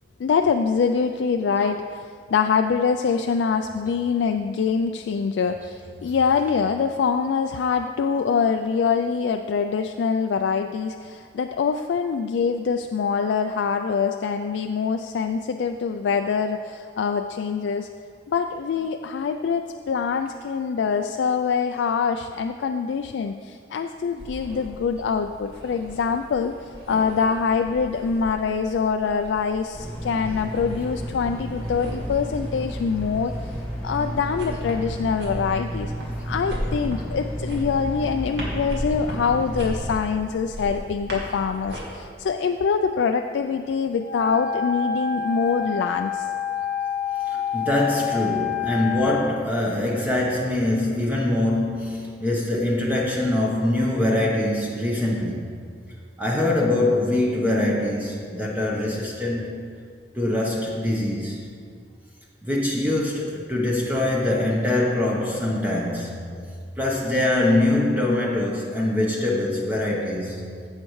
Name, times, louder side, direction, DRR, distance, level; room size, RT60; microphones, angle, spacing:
voice 1, 0.2-1.8 2.3-17.9 18.3-26.5 26.9-33.3 33.8-35.9 36.2-46.3, left 6 dB, 75° left, 6 dB, 0.3 m, -24 dB
sound 1, 24.2-41.8, equal, 60° right, 2.3 m, -38 dB
sound 2, 29.7-39.9, equal, 5° left, 1.6 m, -32 dB
Wind instrument woodwind instrument, 44.0-49.3, left 7 dB, 45° left, 0.8 m, -28 dB
voice 2, 47.3-55.4 56.2-59.6 60.1-61.4 62.4-66.2 66.8-70.4, left 1 dB, 10° right, -3 dB, 0.9 m, -23 dB
15.5 x 6.6 x 3.1 m, 2.2 s
head